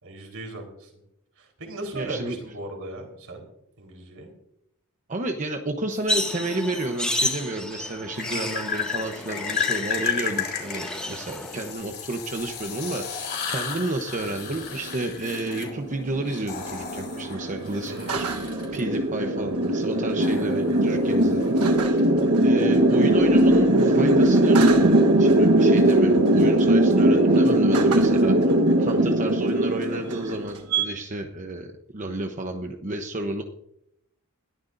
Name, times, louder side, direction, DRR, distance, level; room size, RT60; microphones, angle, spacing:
voice 1, 0.0-0.9 1.4-3.4 3.8-4.3 8.2-8.5 17.9-18.1 20.1-20.4, right 2 dB, 70° right, 2 dB, 4.3 m, -38 dB
voice 2, 1.9-2.4 5.1-21.5 21.8-22.0 22.4-33.4, right 2 dB, 35° right, 4 dB, 0.9 m, -31 dB
sound 1, 5.9-6.9 8.2-18.8 20.2-22.0, left 7 dB, 50° left, 3.8 m, -33 dB
sound 2, 6.1-11.7, left 1 dB, 5° left, 1.9 m, -31 dB
sound 3, 14.5-30.8, right 1 dB, 90° right, 1.3 m, -20 dB
20.5 x 14.0 x 2.6 m, 0.80 s
head